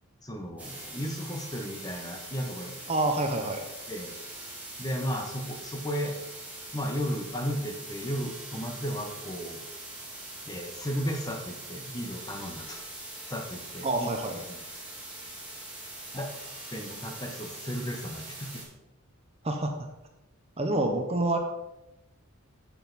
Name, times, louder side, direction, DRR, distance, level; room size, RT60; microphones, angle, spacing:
voice 1, 0.2-2.7 3.9-4.1 4.8-6.2 6.7-9.6 10.5-12.8 13.3-14.1 14.5-14.6 16.1-16.3 16.7-18.7, equal, 15° left, 3 dB, 1.1 m, -34 dB
sound 1, 0.6-18.6, right 2 dB, 5° right, 2.6 m, -43 dB
voice 2, 2.9-3.6 13.8-14.4 19.4-19.7 20.6-21.4, right 2 dB, 25° right, 4 dB, 0.8 m, -27 dB
8.8 x 7.4 x 4.1 m, 0.95 s
head